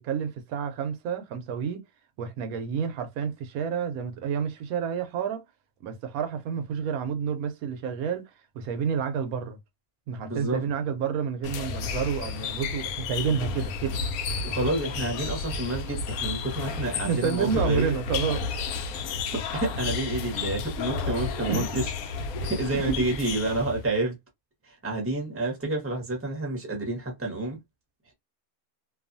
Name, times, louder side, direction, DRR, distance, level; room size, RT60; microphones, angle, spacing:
voice 1, 0.0-1.8 2.2-5.4 5.8-9.6 10.1-14.0 17.0-18.7 21.5-21.7 22.7-23.0, right 7 dB, 80° right, 1.1 m, -29 dB
voice 2, 10.2-10.6 14.4-18.0 19.3-21.9 22.4-24.2 24.6-27.6, right 2 dB, 10° right, 0.8 m, -29 dB
sound 1, 11.4-23.9, left 4 dB, 80° left, 1.0 m, -32 dB
2.6 x 2.4 x 2.5 m
omnidirectional pair, 1.5 m